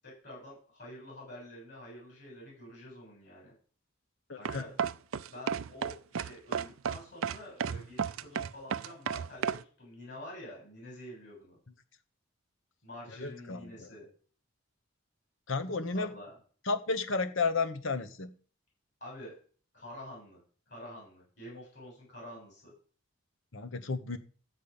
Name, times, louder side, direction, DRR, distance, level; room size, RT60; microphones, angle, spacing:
voice 1, 0.0-3.5 4.4-4.7 5.3-11.6 12.8-14.1 15.9-16.3 19.0-19.4 19.7-20.4 20.7-22.7, left 1 dB, 55° left, -4 dB, 7.8 m, -47 dB
voice 2, 4.3-4.6 13.2-13.9 15.5-16.1 16.7-18.3 23.5-24.2, left 4 dB, 70° left, 9 dB, 1.1 m, -32 dB
sound 1, 4.4-9.6, right 7 dB, 85° right, 0.5 m, -33 dB
13.0 x 5.3 x 8.7 m, 0.43 s
head